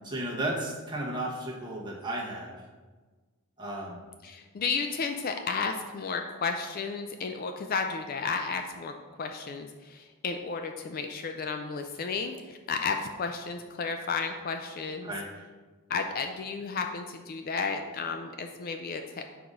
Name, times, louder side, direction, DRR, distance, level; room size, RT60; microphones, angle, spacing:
voice 1, 0.0-2.5 3.6-4.1 15.0-15.3, right 1 dB, 20° right, -3 dB, 1.1 m, -34 dB
voice 2, 4.2-15.1 15.9-19.3, left 5 dB, 40° left, 5 dB, 0.3 m, -33 dB
4.7 x 3.8 x 5.3 m, 1.3 s
head